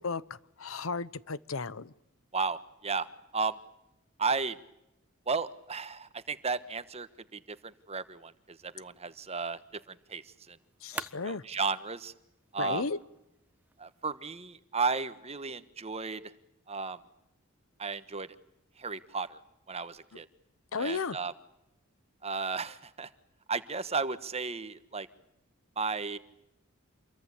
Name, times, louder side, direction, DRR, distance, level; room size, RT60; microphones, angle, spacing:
voice 1, 0.0-1.9 10.8-11.4 12.6-13.0 20.7-21.2, left 4 dB, 80° left, 17 dB, 0.9 m, -34 dB
voice 2, 2.3-3.1 3.3-3.6 4.2-4.6 5.3-10.6 11.2-12.1 12.5-12.8 13.8-16.2 16.7-17.0 17.8-18.3 18.8-19.4 19.7-20.3 20.8-21.3 22.2-23.1 23.5-25.1 25.8-26.2, right 4 dB, 30° right, 12 dB, 1.3 m, -34 dB
sound 1, 8.6-14.5, right 2 dB, 10° right, 1.3 m, -49 dB
27.5 x 23.0 x 8.3 m, 0.86 s
head